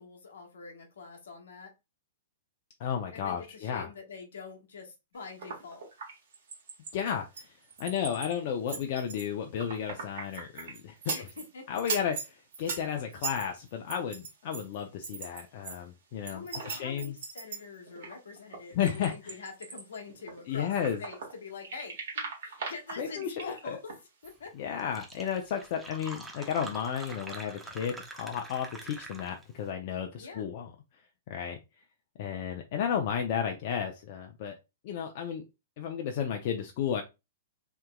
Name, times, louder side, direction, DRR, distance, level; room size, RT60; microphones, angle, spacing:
voice 1, 0.0-1.7 3.1-5.9 11.1-11.7 16.2-20.7 21.0-24.0 24.2-24.5 30.1-30.4, left 4 dB, 75° left, 3 dB, 1.1 m, -45 dB
voice 2, 2.8-3.9 6.9-11.3 11.7-17.1 18.8-19.4 20.5-21.0 23.0-23.6 24.5-30.7 31.3-31.6 32.2-34.5 34.8-35.4 35.8-37.0, left 8 dB, 50° left, 4 dB, 0.5 m, -33 dB
sound 1, 5.2-6.9 7.3-8.4 8.7-11.5 11.8-15.8 16.1-21.3 21.6-24.0 24.2-24.3, right 5 dB, 70° right, 1.5 m, -39 dB
Fill (with liquid), 24.5-24.6 24.8-29.6, right 2 dB, 10° right, 0.6 m, -45 dB
3.4 x 2.8 x 2.2 m, 0.25 s
hypercardioid pair, 125°, 0 cm